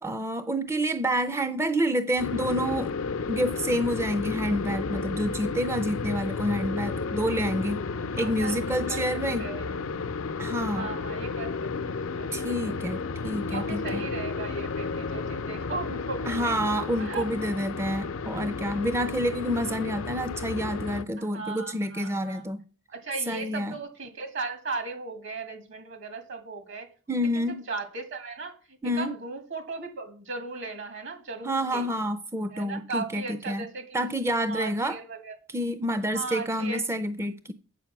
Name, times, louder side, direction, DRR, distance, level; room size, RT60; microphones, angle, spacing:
voice 1, 0.0-2.9 3.3-7.8 8.1-9.5 10.4-10.9 12.3-14.0 16.3-22.6 23.3-23.8 27.1-27.6 28.8-29.2 31.4-33.6 33.9-35.0 35.5-37.5, equal, 15° right, 0.4 m, -28 dB
sound 1, 2.2-21.0, left 4 dB, 90° left, 0.6 m, -32 dB
voice 2, 8.2-8.6 8.9-9.0 9.4-9.6 10.7-11.7 12.2-12.3 12.6-12.9 13.5-16.6 17.0-17.2 21.2-22.4 22.9-26.9 27.3-28.6 28.9-31.9 32.5-33.9 34.4-35.3 36.1-36.8, right 3 dB, 65° right, 2.1 m, -37 dB
8.3 x 7.4 x 5.8 m
head